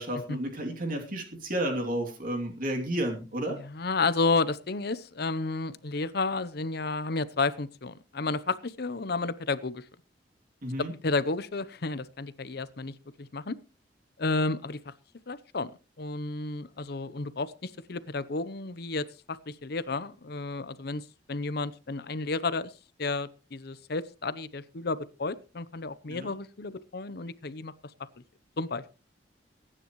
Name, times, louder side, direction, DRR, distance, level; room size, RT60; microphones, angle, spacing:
voice 1, 0.0-3.6 10.6-10.9 26.1-26.3, right 1 dB, 50° right, 2 dB, 2.9 m, -32 dB
voice 2, 3.5-9.8 10.8-13.5 14.2-14.9 15.3-15.7 16.0-22.7 23.0-27.7 28.6-28.8, left 3 dB, 60° left, 16 dB, 0.8 m, -32 dB
22.5 x 10.0 x 3.1 m, 0.32 s
head